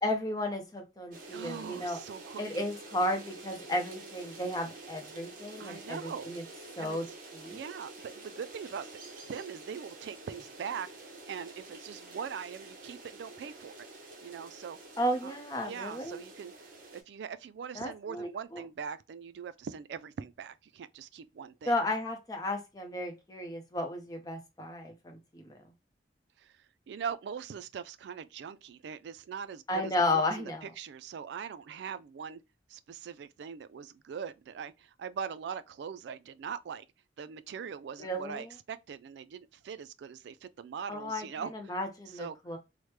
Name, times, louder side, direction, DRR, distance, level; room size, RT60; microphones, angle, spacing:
voice 1, 0.0-2.0 2.4-6.4 6.8-7.1 7.3-7.6 15.0-16.2 17.7-18.6 21.7-25.5 29.7-30.7 38.0-38.5 40.9-41.3 41.5-42.6, left 1 dB, 20° left, 0.6 m, -33 dB
sound 1, 1.1-17.0, right 2 dB, 45° right, 0.9 m, -48 dB
voice 2, 1.3-2.7 5.6-6.3 6.8-7.0 7.5-8.9 9.3-10.9 11.3-13.7 14.2-14.8 15.2-15.3 15.6-16.5 16.9-21.7 26.4-32.4 32.7-36.9 37.2-41.5 42.1-42.4, right 7 dB, 70° right, 0.3 m, -41 dB
3.1 x 2.1 x 3.2 m
head